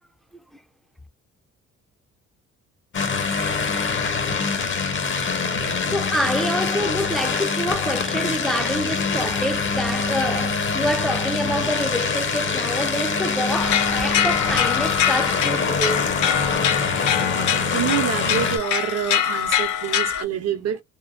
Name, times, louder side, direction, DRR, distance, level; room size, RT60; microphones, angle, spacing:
sound 1, 2.9-18.6, left 4 dB, 40° left, 0.8 m, -24 dB
voice 1, 5.9-16.2, equal, ahead, 0.5 m, -27 dB
sound 2, 13.5-20.2, left 9 dB, 75° left, 0.6 m, -24 dB
voice 2, 17.7-20.8, right 9 dB, 55° right, 0.8 m, -26 dB
3.0 x 2.1 x 2.5 m
cardioid pair, 90°, 30 cm